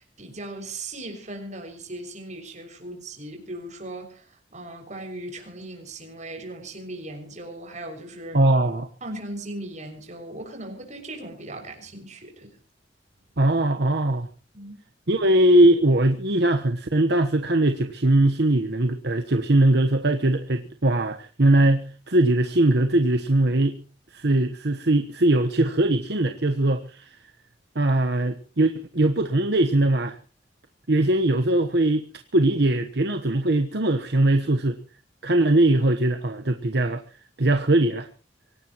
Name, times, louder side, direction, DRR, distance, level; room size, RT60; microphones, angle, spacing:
voice 1, 0.0-8.4 9.0-12.6 14.5-14.8, right 1 dB, 40° right, 3 dB, 6.5 m, -38 dB
voice 2, 8.3-8.9 13.4-14.3 15.1-23.8 24.1-27.1 27.7-30.2 30.9-32.0 32.3-34.8 35.2-37.0 37.4-38.1, right 1 dB, 65° right, 6 dB, 1.2 m, -21 dB
24.5 x 18.0 x 3.1 m, 0.39 s
head